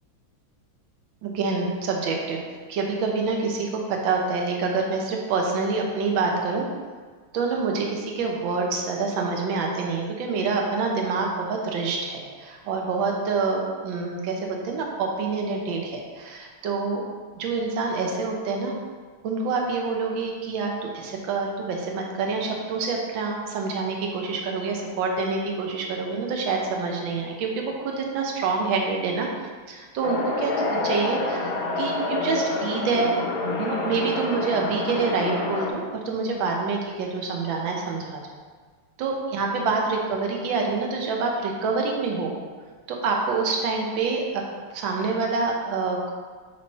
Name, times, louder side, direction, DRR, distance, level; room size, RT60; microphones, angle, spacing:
voice 1, 1.2-2.4 2.7-6.7 7.3-17.0 17.4-18.8 19.2-29.3 29.7-33.1 33.6-38.2 39.0-42.4 42.9-44.2 44.7-46.1, right 4 dB, 70° right, 0 dB, 1.5 m, -26 dB
sound 1, 30.0-35.7, left 3 dB, 65° left, 0.9 m, -28 dB
7.4 x 3.1 x 4.1 m, 1.5 s
omnidirectional pair, 2.3 m